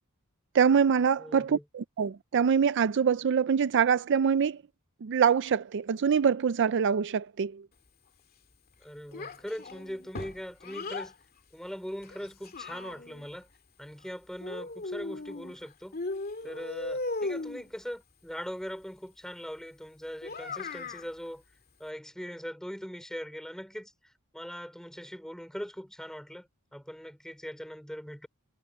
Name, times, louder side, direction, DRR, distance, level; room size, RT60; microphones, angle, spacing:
voice 1, 0.5-4.6 5.0-7.6, right 7 dB, 55° right, 0.4 m, -24 dB
voice 2, 1.2-1.6 8.8-11.1 11.5-13.5 13.8-16.0 16.4-21.4 21.8-28.3, equal, 5° left, 3.6 m, -41 dB
Child speech kid speaking, 9.1-11.1 12.0-13.3 14.4-15.6 15.9-17.7 20.2-21.1, left 3 dB, 45° left, 2.4 m, -37 dB
head